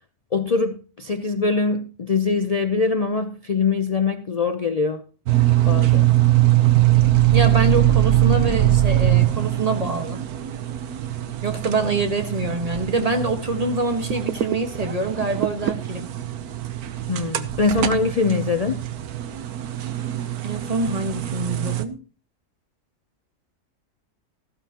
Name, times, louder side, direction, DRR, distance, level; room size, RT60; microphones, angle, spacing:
voice 1, 0.3-5.0 5.7-6.1 17.1-18.8, left 4 dB, 60° left, 0.4 m, -23 dB
sound 1, 5.3-21.9, right 14 dB, 75° right, 1.3 m, -22 dB
voice 2, 7.3-10.2 11.4-16.1 20.4-22.0, right 3 dB, 25° right, 1.4 m, -25 dB
14.5 x 13.0 x 2.9 m
omnidirectional pair, 1.6 m